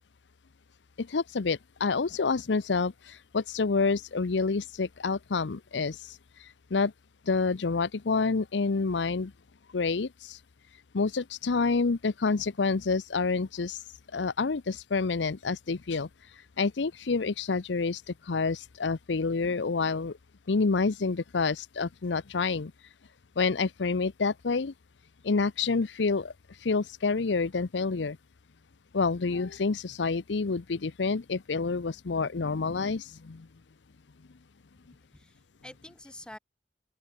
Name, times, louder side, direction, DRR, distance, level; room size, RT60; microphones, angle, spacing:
voice 1, 1.0-6.9 7.3-9.3 9.7-10.4 10.9-13.8 14.1-16.1 16.6-20.2 20.5-22.7 23.4-24.7 25.2-26.3 26.6-28.2 28.9-33.5, left 4 dB, 90° left, 0.7 m, -28 dB
voice 2, 34.9-36.4, left 1 dB, 5° left, 1.7 m, -48 dB
open air
head